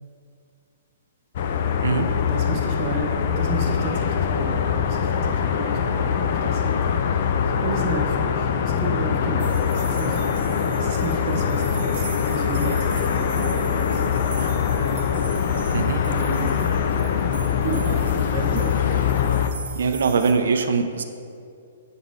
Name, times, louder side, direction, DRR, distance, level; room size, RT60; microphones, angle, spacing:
sound 1, 1.4-19.5, left 7 dB, 40° left, 0.3 m, -23 dB
voice 1, 2.3-14.8 16.0-16.7 17.6-19.2, right 3 dB, 30° right, 0 dB, 0.6 m, -32 dB
sound 2, 9.4-20.3, right 6 dB, 55° right, 0.9 m, -41 dB
voice 2, 19.8-21.0, right 5 dB, 75° right, 7 dB, 0.4 m, -22 dB
8.1 x 4.0 x 3.6 m, 2.4 s
hypercardioid pair, 175°, 0 cm